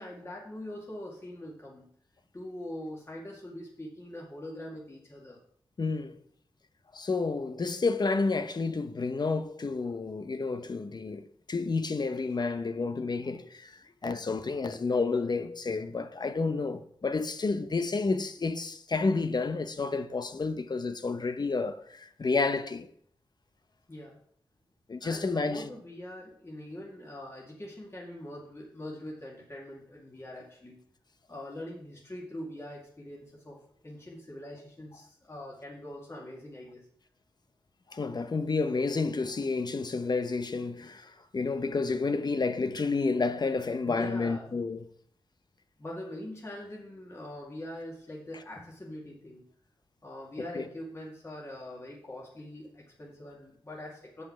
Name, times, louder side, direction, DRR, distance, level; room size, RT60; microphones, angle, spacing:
voice 1, 0.0-1.9 2.3-5.4 23.9-24.2 25.0-30.8 31.3-33.6 33.8-36.8 43.8-44.6 45.8-49.5 50.0-54.2, left 1 dB, 30° left, 2.2 m, -43 dB
voice 2, 5.8-6.2 6.9-22.9 24.9-25.7 37.9-44.8 50.5-50.7, left 4 dB, 45° left, 0.9 m, -30 dB
7.8 x 5.4 x 6.1 m
cardioid pair, 55°, 10 cm